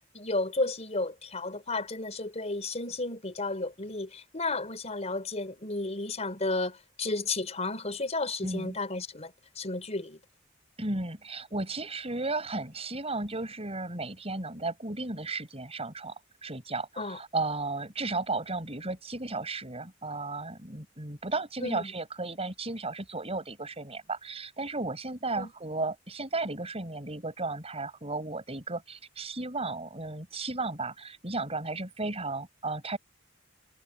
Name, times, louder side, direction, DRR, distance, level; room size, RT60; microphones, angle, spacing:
voice 1, 0.1-10.2 17.0-17.2 21.6-21.9 25.4-25.5, left 2 dB, 35° left, 4.2 m, -33 dB
voice 2, 8.4-8.8 10.8-33.0, right 3 dB, 30° right, 7.4 m, -34 dB
head